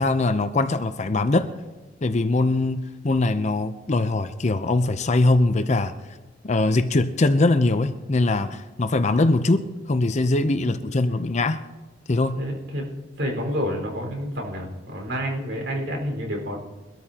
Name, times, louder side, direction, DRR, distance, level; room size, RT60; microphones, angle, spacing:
voice 1, 0.0-1.5 2.0-5.9 6.4-11.6 12.1-12.4, left 2 dB, 40° left, 9 dB, 0.6 m, -22 dB
voice 2, 12.4-12.9 13.2-16.6, equal, 80° right, 0 dB, 4.7 m, -29 dB
23.0 x 13.0 x 2.9 m, 1.2 s
head